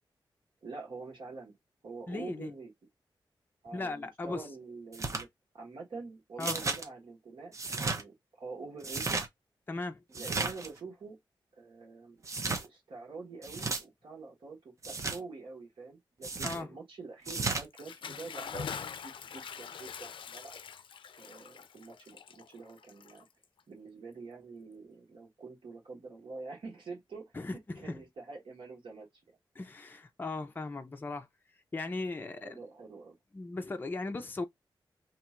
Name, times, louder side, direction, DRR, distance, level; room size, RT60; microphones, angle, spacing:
voice 1, 0.6-1.5 1.8-2.7 3.6-5.3 5.5-9.2 10.1-11.2 11.5-20.6 21.2-23.3 23.7-29.4 32.4-33.2, right 4 dB, 85° right, 1.4 m, -46 dB
voice 2, 2.1-2.5 3.7-4.5 6.4-6.6 9.7-10.0 16.4-16.7 27.3-28.0 29.6-31.3 31.7-32.6 33.3-34.4, left 3 dB, 25° left, 0.5 m, -37 dB
sound 1, 4.9-5.2 6.4-6.8 7.5-8.0 8.8-9.3 10.1-10.7 12.2-12.6 13.4-13.8 14.8-15.2 16.2-16.6 17.2-17.6, right 3 dB, 35° right, 0.6 m, -33 dB
Bathtub (filling or washing) / Splash splatter, 17.6-23.6, left 7 dB, 80° left, 0.4 m, -44 dB
2.9 x 2.4 x 4.2 m
wide cardioid pair, 130°, 9 cm